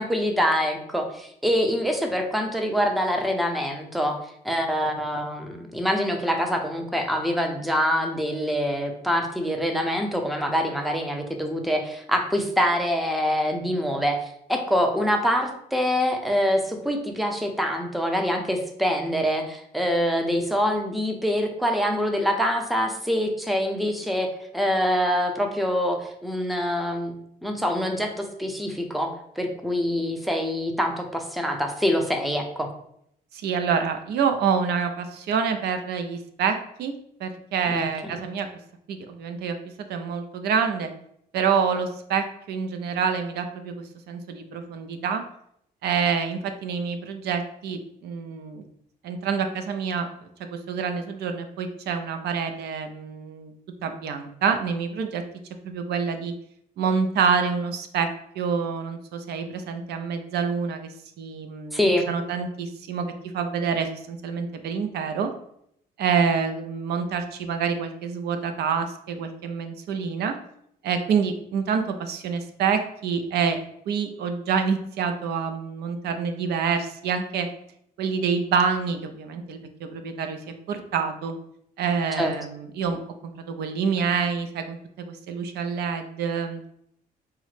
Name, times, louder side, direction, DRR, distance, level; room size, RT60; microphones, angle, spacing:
voice 1, 0.0-4.2 4.4-24.3 24.5-27.2 27.4-32.7 37.7-37.8 61.7-62.1 82.2-82.3, equal, ahead, 3 dB, 0.5 m, -25 dB
voice 2, 33.3-36.9 37.2-38.5 38.9-40.9 41.3-43.7 44.1-45.2 45.8-48.6 49.0-50.1 50.5-53.5 53.8-55.2 55.6-56.3 56.8-58.1 58.4-60.9 61.2-65.3 66.0-70.3 70.8-73.6 73.9-77.5 78.0-80.4 80.7-81.3 81.8-86.6, right 6 dB, 80° right, 7 dB, 0.4 m, -27 dB
4.7 x 2.1 x 3.1 m, 0.72 s
cardioid pair, 105°, 17 cm